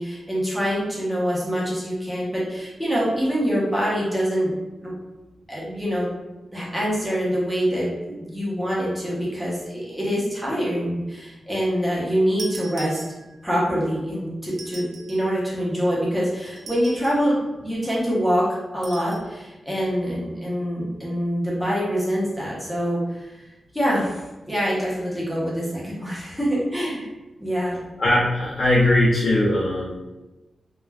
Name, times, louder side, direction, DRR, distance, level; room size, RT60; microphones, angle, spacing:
voice 1, 0.0-4.5 4.8-5.0 5.5-6.1 6.5-13.0 13.4-23.3 23.7-27.1 27.4-27.8, equal, ahead, -6 dB, 0.6 m, -25 dB
sound 1, 12.4-13.5 14.5-15.3 16.6-17.3 18.8-19.3, right 3 dB, 80° right, 0.4 m, -40 dB
voice 2, 28.0-30.0, left 1 dB, 50° left, -5 dB, 0.4 m, -19 dB
2.3 x 2.1 x 3.2 m, 1.1 s
wide cardioid pair, 165°, 0 cm